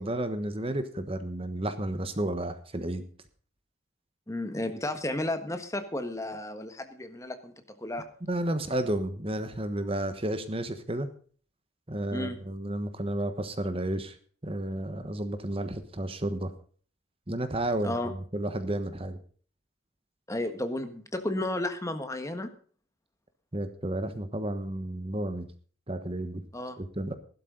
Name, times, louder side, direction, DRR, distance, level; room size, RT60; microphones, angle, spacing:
voice 1, 0.0-3.0 8.3-11.1 11.9-14.2 14.4-16.5 17.3-19.2 23.5-25.5 25.9-26.4 26.8-27.1, right 1 dB, 25° right, 10 dB, 1.2 m, -32 dB
voice 2, 4.3-7.5 7.8-8.1 12.1-12.4 17.8-18.1 20.3-22.5 26.5-26.8, left 1 dB, 15° left, 8 dB, 1.4 m, -33 dB
15.5 x 12.5 x 3.9 m, 0.44 s
head